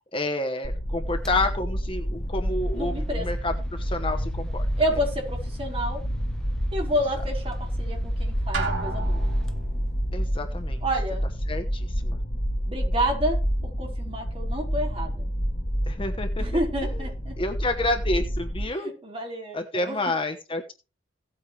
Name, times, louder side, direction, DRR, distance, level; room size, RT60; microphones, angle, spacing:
voice 1, 0.1-4.7 10.1-10.8 11.5-12.2 15.9-16.5 17.4-18.9 19.5-20.7, left 2 dB, 25° left, 1.1 m, -29 dB
sound 1, 0.6-18.6, equal, 55° left, 3.0 m, -29 dB
sound 2, 1.2-1.4 2.4-10.4, left 2 dB, 5° left, 1.2 m, -42 dB
voice 2, 2.7-3.3 4.8-6.0 6.7-9.3 10.8-11.3 12.6-13.4 13.8-15.3 16.4-17.4 18.7-20.1, equal, 30° right, 4.7 m, -29 dB
Drum, 8.5-9.7, right 3 dB, 70° right, 2.5 m, -31 dB
17.0 x 8.3 x 3.3 m
head